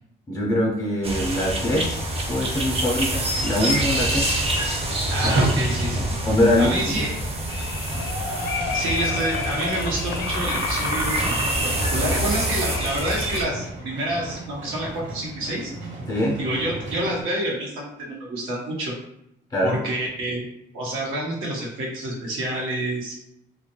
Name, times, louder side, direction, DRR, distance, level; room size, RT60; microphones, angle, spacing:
voice 1, 0.3-4.4 5.2-5.3 5.9-7.1 16.1-16.4 19.5-19.7, left 1 dB, 20° left, -2 dB, 0.5 m, -23 dB
sound 1, 1.0-13.4, right 1 dB, 30° right, 0.6 m, -26 dB
voice 2, 5.1-6.1 6.6-7.1 8.7-15.7 16.4-18.9 19.6-20.4 20.7-23.1, right 1 dB, 85° right, -3 dB, 0.9 m, -28 dB
Livestock farm animals working animals, 5.3-5.7 7.4-17.2, right 2 dB, 60° right, 1.1 m, -33 dB
sound 2, 7.5-13.4, left 5 dB, 75° left, 0.4 m, -32 dB
2.2 x 2.1 x 2.9 m, 0.80 s
cardioid pair, 90°, 20 cm